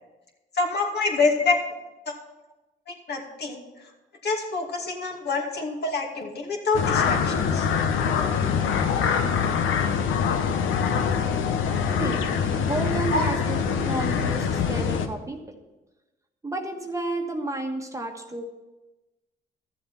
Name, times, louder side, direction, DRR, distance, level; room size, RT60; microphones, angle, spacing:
voice 1, 0.5-1.5 2.1-2.2 2.9-3.6 4.2-7.7 13.1-13.3, left 3 dB, 55° left, 1 dB, 2.6 m, -26 dB
sound 1, 6.7-15.1, left 7 dB, 80° left, 1.0 m, -24 dB
voice 2, 11.9-12.3 12.6-15.6 16.4-18.4, right 2 dB, 15° right, 3 dB, 1.3 m, -31 dB
13.0 x 7.4 x 5.8 m, 1.1 s
cardioid pair, 90°, 20 cm